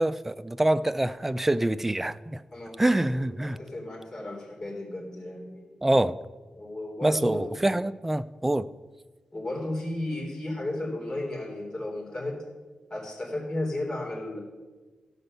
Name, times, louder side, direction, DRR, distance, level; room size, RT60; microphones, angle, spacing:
voice 1, 0.0-2.4 2.8-3.6 5.8-6.2 7.0-8.7, right 1 dB, 10° right, 13 dB, 0.4 m, -25 dB
voice 2, 3.1-5.7 6.5-7.5 9.3-12.4 12.9-14.4, left 1 dB, 30° left, -2 dB, 3.4 m, -34 dB
15.0 x 5.3 x 6.6 m, 1.3 s
wide cardioid pair, 120°, 2 cm